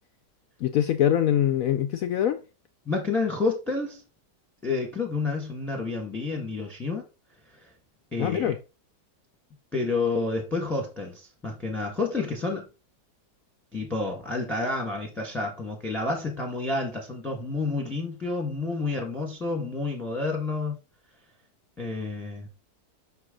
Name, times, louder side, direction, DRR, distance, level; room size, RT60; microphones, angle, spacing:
voice 1, 0.6-2.4 8.2-8.6, left 10 dB, 75° left, 0.8 m, -23 dB
voice 2, 2.9-4.0 4.6-7.0 7.6-7.7 8.1-8.5 9.7-12.7 13.7-20.7 21.8-22.5, left 3 dB, ahead, 1.1 m, -29 dB
6.1 x 4.6 x 3.7 m
omnidirectional pair, 1.9 m